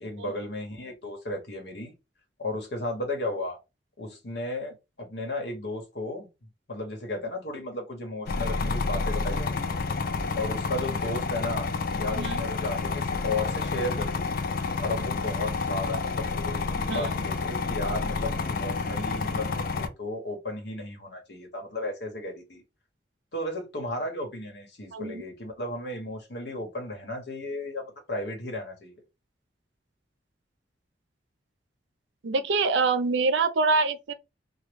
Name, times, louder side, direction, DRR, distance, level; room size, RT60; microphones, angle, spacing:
voice 1, 0.0-1.9 2.4-3.6 4.0-6.3 6.7-9.7 10.3-14.3 14.8-22.6 23.3-28.9, left 1 dB, 65° left, 1.1 m, -34 dB
sound 1, 8.3-19.9, left 4 dB, 50° left, 0.4 m, -29 dB
voice 2, 24.9-25.2 32.2-34.1, right 4 dB, 85° right, 0.5 m, -25 dB
3.0 x 2.3 x 3.4 m
head